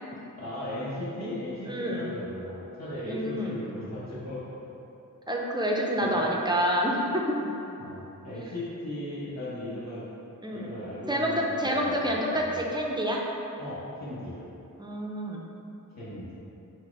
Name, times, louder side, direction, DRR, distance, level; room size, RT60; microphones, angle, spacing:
voice 1, 0.4-4.6 6.0-6.2 7.8-10.1 10.5-12.7 13.6-14.4 16.0-16.4, left 1 dB, 55° left, -9 dB, 1.0 m, -37 dB
voice 2, 1.7-2.1 3.0-3.6 5.3-7.4 10.4-10.7 11.1-13.2 14.8-15.4, equal, 15° right, -2 dB, 0.4 m, -28 dB
4.6 x 2.0 x 4.5 m, 2.9 s
wide cardioid pair, 105°, 33 cm